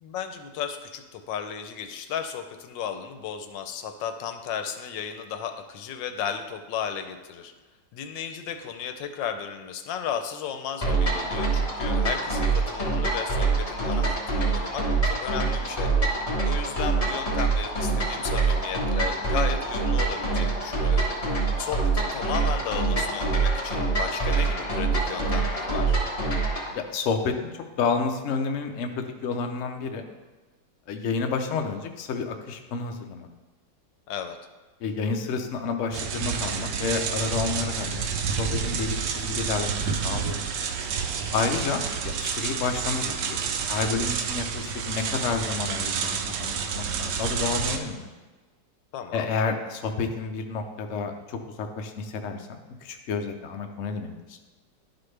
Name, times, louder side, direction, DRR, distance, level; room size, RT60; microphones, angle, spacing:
voice 1, 0.0-7.5 7.9-15.9 16.4-21.1 21.6-26.0 34.1-34.4 48.9-49.3, left 8 dB, 85° left, 7 dB, 1.3 m, -34 dB
sound 1, 10.8-26.7, right 3 dB, 20° left, 1.3 m, -25 dB
voice 2, 26.9-27.3 27.8-30.0 30.9-33.3 34.8-40.4 41.3-48.1 49.1-54.4, left 5 dB, 60° left, 4 dB, 0.8 m, -30 dB
sound 2, 35.9-47.8, right 6 dB, 75° right, 1.2 m, -29 dB
11.5 x 4.2 x 3.3 m, 1.3 s
omnidirectional pair, 2.0 m